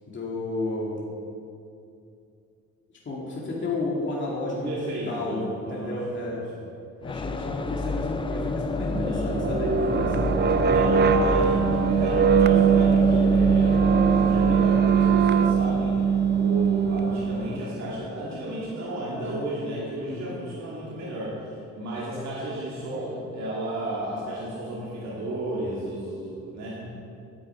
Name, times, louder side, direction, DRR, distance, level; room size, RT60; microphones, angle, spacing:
voice 1, 0.1-1.0 3.0-6.4 7.0-10.6 20.1-20.4, left 2 dB, 40° left, -5 dB, 2.2 m, -32 dB
voice 2, 4.5-6.6 8.9-9.3 10.6-26.9, right 1 dB, 65° right, -7 dB, 2.7 m, -33 dB
sound 1, 7.0-18.8, left 3 dB, 15° left, 0.5 m, -30 dB
sound 2, 8.9-17.7, right 7 dB, 35° right, 0.5 m, -21 dB
10.0 x 8.3 x 5.5 m, 2.6 s
cardioid pair, 90°, 30 cm